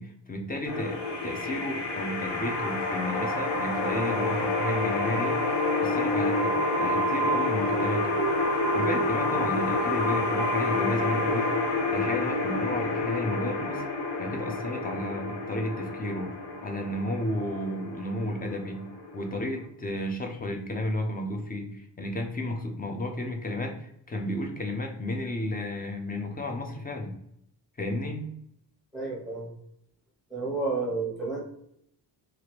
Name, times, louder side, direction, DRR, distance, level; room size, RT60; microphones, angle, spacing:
voice 1, 0.0-5.4 5.8-8.2 8.7-11.5 11.9-13.8 14.2-16.3 16.6-18.8 19.1-27.2 27.8-28.3, left 1 dB, 20° left, 3 dB, 0.4 m, -32 dB
sound 1, 0.7-19.6, left 2 dB, 70° left, 0.7 m, -28 dB
voice 2, 28.9-29.5 30.3-31.4, right 3 dB, ahead, -3 dB, 0.9 m, -31 dB
3.0 x 2.5 x 2.9 m, 0.73 s
wide cardioid pair, 170°, 43 cm